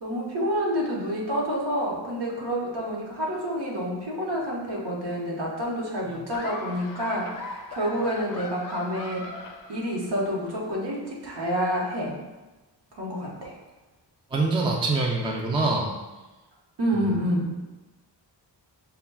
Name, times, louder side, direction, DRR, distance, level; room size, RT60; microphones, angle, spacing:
voice 1, 0.0-9.2 9.7-12.2 13.0-13.6 16.8-17.5, equal, 65° right, -3 dB, 1.1 m, -28 dB
Laughter, 6.3-10.3, left 3 dB, 45° left, 0.5 m, -39 dB
voice 2, 14.3-15.9, right 3 dB, 10° right, 0 dB, 0.4 m, -25 dB
6.8 x 2.3 x 2.3 m, 1.1 s
wide cardioid pair, 110°, 44 cm